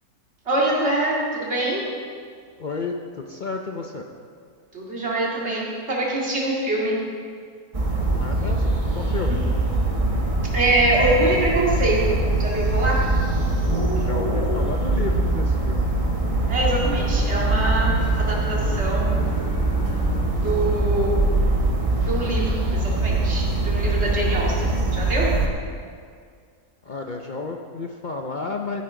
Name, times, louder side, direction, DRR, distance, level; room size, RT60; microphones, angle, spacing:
voice 1, 0.5-1.8 4.7-7.0 9.3-9.4 10.5-13.0 16.5-19.1 20.4-21.2 22.1-25.3, right 1 dB, 45° right, -4 dB, 2.5 m, -24 dB
voice 2, 2.6-4.0 8.2-9.4 13.9-15.9 26.8-28.8, left 4 dB, 50° left, 2 dB, 0.5 m, -32 dB
sound 1, 7.7-25.5, right 2 dB, 25° right, 1.1 m, -22 dB
Bowed string instrument, 17.0-21.8, left 1 dB, 85° left, 2.1 m, -41 dB
15.0 x 9.4 x 3.8 m, 2.1 s
omnidirectional pair, 1.6 m